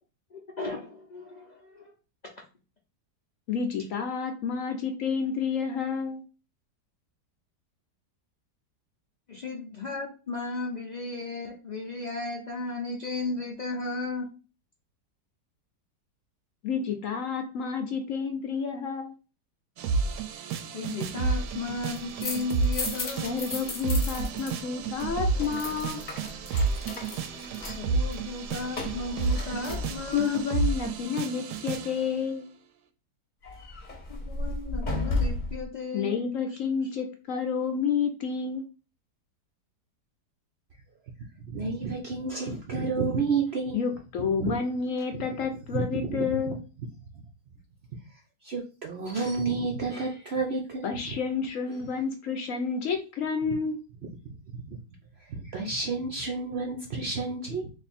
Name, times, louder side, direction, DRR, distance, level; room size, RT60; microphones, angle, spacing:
voice 1, 0.3-1.9 9.3-14.3 20.7-23.3 27.6-30.4 34.1-36.6, left 3 dB, 80° left, -2 dB, 0.3 m, -35 dB
voice 2, 3.5-6.2 16.6-19.1 23.2-26.0 30.1-32.5 35.9-38.6 43.7-46.6 50.8-53.8, left 6 dB, 65° left, 4 dB, 0.9 m, -30 dB
sound 1, 19.8-32.0, right 4 dB, 80° right, 1.1 m, -31 dB
sound 2, 21.8-24.5 24.8-30.4 33.4-35.6, left 2 dB, 35° left, 0.8 m, -34 dB
voice 3, 41.4-43.8 44.3-44.5 45.1-45.2 45.7-46.3 47.1-47.2 48.4-51.2 54.2-54.8 55.2-57.7, right 4 dB, 60° right, -1 dB, 0.7 m, -31 dB
3.4 x 2.6 x 4.1 m, 0.33 s
omnidirectional pair, 1.8 m